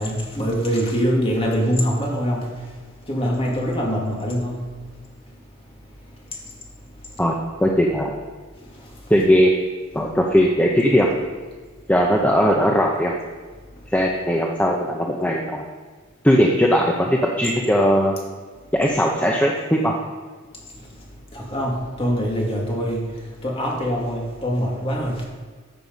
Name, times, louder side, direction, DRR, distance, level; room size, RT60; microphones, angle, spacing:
voice 1, 0.0-2.5 3.1-4.6 21.3-23.1 23.4-25.2, equal, 30° left, -2 dB, 2.5 m, -23 dB
voice 2, 7.6-8.2 9.1-9.5 9.9-11.1 11.9-13.1 13.9-15.6 16.2-18.1 18.7-19.9, equal, 10° left, 0 dB, 0.8 m, -18 dB
14.0 x 6.8 x 5.4 m, 1.5 s
head